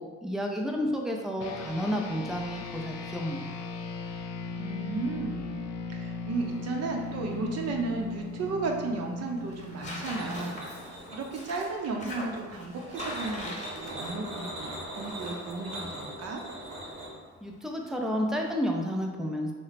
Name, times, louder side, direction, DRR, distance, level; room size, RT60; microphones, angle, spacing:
voice 1, 0.0-3.5 17.4-19.5, equal, ahead, 1 dB, 0.4 m, -31 dB
sound 1, 1.4-11.1, left 4 dB, 60° left, 0.4 m, -38 dB
voice 2, 4.6-5.6 5.9-16.4, right 3 dB, 55° right, 1 dB, 0.7 m, -34 dB
Tearing, 6.3-18.6, left 1 dB, 25° left, 0.9 m, -44 dB
sound 2, 10.2-11.7 12.7-17.1, right 1 dB, 80° right, 1.1 m, -40 dB
3.1 x 2.1 x 4.0 m, 1.4 s
cardioid pair, 90°, 30 cm